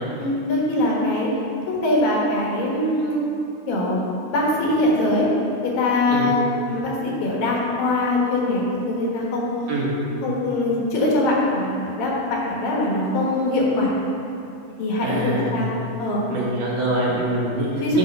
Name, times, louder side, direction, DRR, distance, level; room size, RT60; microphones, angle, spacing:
voice 1, 0.2-1.3 1.7-3.3 3.7-4.0 4.3-5.3 5.6-9.4 10.2-14.0 14.8-15.7 16.0-16.2 17.7-18.0, left 1 dB, 75° left, -3 dB, 3.2 m, -22 dB
voice 2, 15.0-15.5 16.3-17.7 17.9-18.0, right 2 dB, 65° right, -6 dB, 3.2 m, -24 dB
10.0 x 4.1 x 6.6 m, 2.8 s
omnidirectional pair, 4.2 m